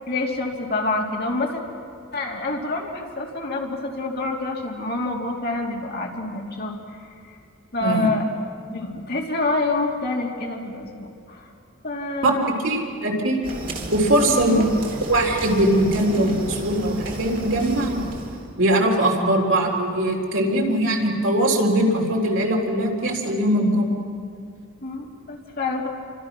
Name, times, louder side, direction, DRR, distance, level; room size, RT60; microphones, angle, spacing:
voice 1, 0.1-1.6 2.1-7.4 7.7-8.2 8.7-11.5 11.8-12.4 14.2-14.7 24.8-25.9, left 2 dB, 50° left, 0 dB, 3.0 m, -27 dB
voice 2, 12.6-13.4 13.9-14.7 15.1-18.0 18.6-24.0, right 1 dB, 60° right, 0 dB, 3.7 m, -21 dB
sound 1, 13.4-18.5, right 1 dB, 40° right, 3.0 m, -33 dB
29.0 x 25.0 x 6.1 m, 2.3 s
head